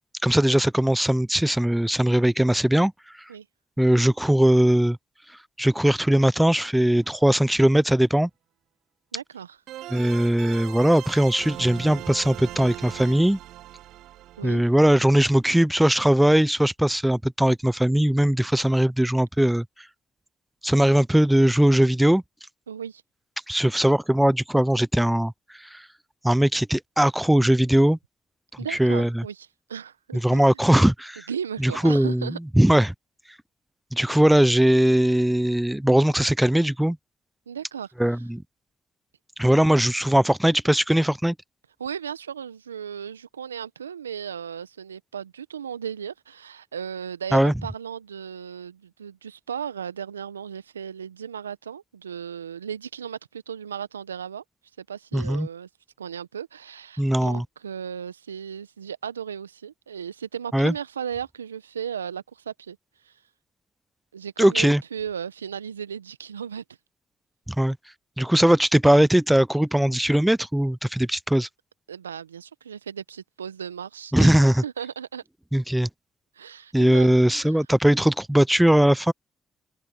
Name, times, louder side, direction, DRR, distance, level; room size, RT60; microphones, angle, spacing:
voice 1, 0.2-2.9 3.8-5.0 5.6-8.3 9.9-13.4 14.4-19.6 20.6-22.2 23.5-25.3 25.7-25.8 26.2-28.0 28.7-29.2 30.2-31.2 31.6-32.3 32.6-32.9 33.9-37.0 38.0-38.4 39.4-41.3 47.3-47.5 55.1-55.5 57.0-57.4 60.5-60.7 64.4-64.8 67.5-67.8 68.2-71.5 74.1-74.6 75.5-75.9 76.7-79.1, right 1 dB, 5° right, 0.8 m, -20 dB
sound 1, 6.8-6.9 9.7-15.6, right 14 dB, 65° right, 1.5 m, -40 dB
voice 2, 9.1-9.6 14.4-14.7 22.7-23.0 28.6-30.6 31.3-32.4 34.1-34.2 37.5-37.9 41.8-54.4 54.8-55.7 56.0-62.8 63.0-63.1 64.1-66.6 71.9-74.3 74.6-75.2 76.3-77.6, right 8 dB, 90° right, 1.3 m, -36 dB
open air
figure-of-eight pair, 40°, 0 cm